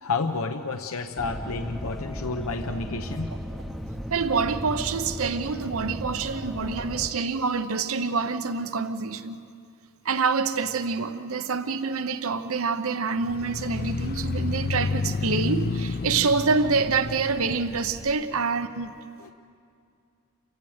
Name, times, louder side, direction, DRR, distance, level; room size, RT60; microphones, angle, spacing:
voice 1, 0.0-3.3 19.2-19.3, left 4 dB, 70° left, 6 dB, 0.8 m, -30 dB
sound 1, 1.2-7.1, equal, ahead, 0.7 m, -36 dB
voice 2, 4.1-9.4 10.0-18.9, right 4 dB, 75° right, 10 dB, 0.8 m, -26 dB
sound 2, 13.2-18.2, left 3 dB, 45° left, 0.5 m, -30 dB
29.0 x 16.0 x 7.9 m, 2.4 s
head